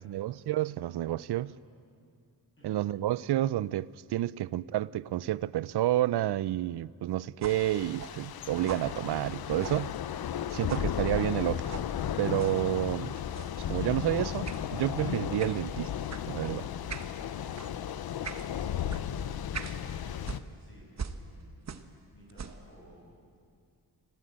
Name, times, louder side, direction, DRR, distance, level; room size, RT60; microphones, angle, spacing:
voice 1, 0.0-1.5 2.6-9.9 10.5-11.8 12.2-13.2 13.7-15.9 16.3-16.7, right 14 dB, 75° right, 0.5 m, -30 dB
sound 1, 7.4-10.4 10.7-10.9 11.7-11.9 12.4-12.6 13.3-13.6 14.4-14.6 15.4-15.6 16.1-16.3 16.9-17.1 17.5-17.7 18.2-18.5 18.9-19.0 19.5-19.8 20.2-22.0 22.3-22.7, right 6 dB, 45° right, 1.0 m, -42 dB
Thunder / Rain, 7.5-20.4, left 9 dB, 65° left, 0.7 m, -35 dB
voice 2, 16.7-18.3 19.0-23.0, equal, 30° left, 7.0 m, -57 dB
25.5 x 15.5 x 8.8 m
wide cardioid pair, 140°, 40 cm